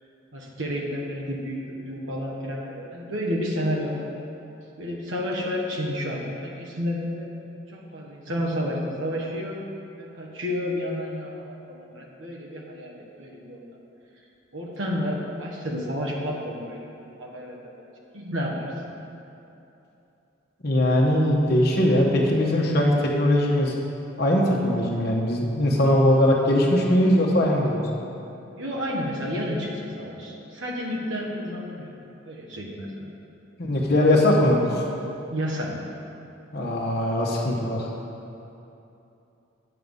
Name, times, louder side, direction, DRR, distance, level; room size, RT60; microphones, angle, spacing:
voice 1, 0.3-4.2 4.8-7.3 7.7-9.6 10.0-13.6 14.5-16.9 17.2-17.9 18.1-18.9 28.6-31.9 32.2-33.1 35.3-35.8, equal, 75° right, -2 dB, 1.3 m, -31 dB
voice 2, 20.6-23.7 24.2-27.9 33.6-34.8 36.5-37.9, left 1 dB, 50° left, -3 dB, 1.1 m, -20 dB
8.5 x 6.6 x 5.4 m, 2.9 s
head